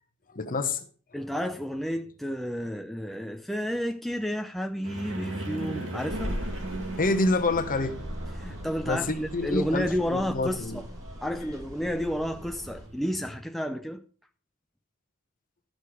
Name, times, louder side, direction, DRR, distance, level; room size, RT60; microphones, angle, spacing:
voice 1, 0.3-0.8 7.0-8.0 8.8-10.8, left 2 dB, 40° left, 1.0 m, -27 dB
voice 2, 1.1-6.4 8.4-10.9 11.2-14.0, equal, ahead, 0.4 m, -31 dB
sound 1, 4.8-13.4, right 2 dB, 60° right, 2.4 m, -39 dB
sound 2, 6.1-12.9, left 1 dB, 15° right, 1.6 m, -40 dB
12.5 x 6.4 x 4.9 m
head